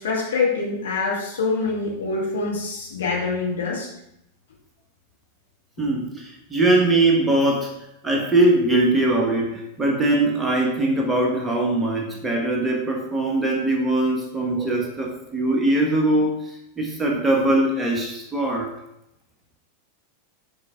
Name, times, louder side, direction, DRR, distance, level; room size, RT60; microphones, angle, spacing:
voice 1, 0.0-3.9, left 4 dB, 65° left, -4 dB, 2.2 m, -25 dB
voice 2, 5.8-7.7 8.0-18.7, right 2 dB, 10° right, -1 dB, 1.4 m, -21 dB
6.6 x 4.9 x 3.6 m, 0.81 s
figure-of-eight pair, 90°, 0 cm